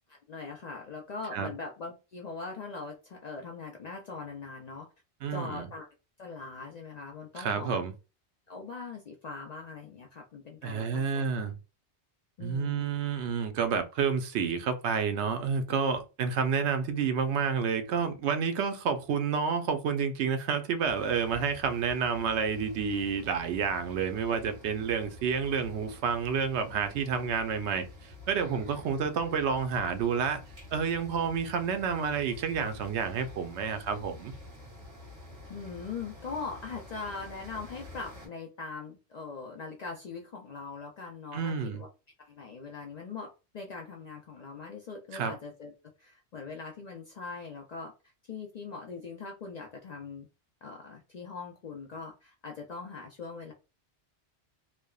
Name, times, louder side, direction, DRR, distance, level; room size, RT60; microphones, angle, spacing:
voice 1, 0.1-4.9 5.3-5.9 6.2-7.8 8.5-11.3 12.4-13.0 35.5-41.9 42.2-45.7 46.0-47.9 48.3-50.3 50.6-53.5, left 4 dB, 55° left, 0.4 m, -41 dB
voice 2, 5.2-5.7 7.4-7.9 10.6-11.6 12.4-30.4 30.7-34.3 41.3-41.8 45.1-45.3, right 6 dB, 80° right, 0.9 m, -29 dB
sound 1, 20.8-38.3, left 2 dB, 30° right, 1.3 m, -48 dB
3.2 x 2.1 x 2.3 m
omnidirectional pair, 1.1 m